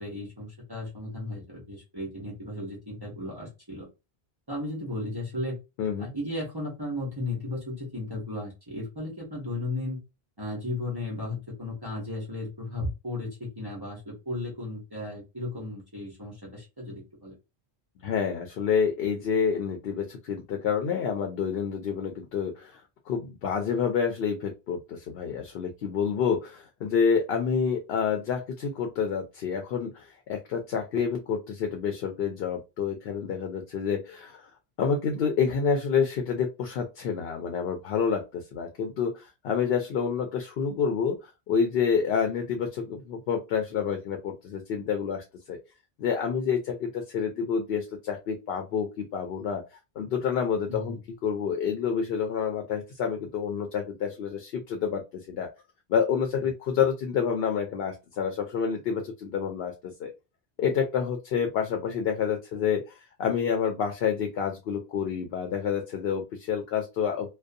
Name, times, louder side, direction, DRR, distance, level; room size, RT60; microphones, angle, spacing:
voice 1, 0.0-3.9 4.5-5.6 6.0-10.0 10.4-17.3 50.7-51.0, left 2 dB, 25° right, -4 dB, 0.9 m, -35 dB
voice 2, 5.8-6.1 18.0-22.8 23.1-34.5 34.8-45.6 46.0-49.6 50.0-51.0 51.2-55.0 55.3-55.5 55.9-60.1 60.6-67.3, left 6 dB, 70° left, 4 dB, 0.8 m, -28 dB
2.6 x 2.3 x 2.5 m, 0.26 s
omnidirectional pair, 1.1 m